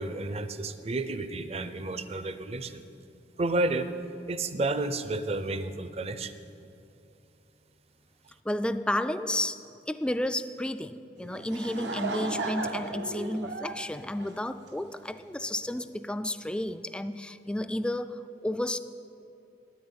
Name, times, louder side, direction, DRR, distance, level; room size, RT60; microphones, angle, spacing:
voice 1, 0.0-2.8 3.4-3.9 4.3-6.3, right 2 dB, 35° right, 11 dB, 0.6 m, -31 dB
voice 2, 8.5-9.6 9.9-18.8, left 1 dB, 5° left, 11 dB, 0.3 m, -32 dB
Laughter / Crowd, 11.2-15.0, right 3 dB, 80° right, 1.0 m, -35 dB
9.5 x 9.3 x 9.6 m, 2.7 s
head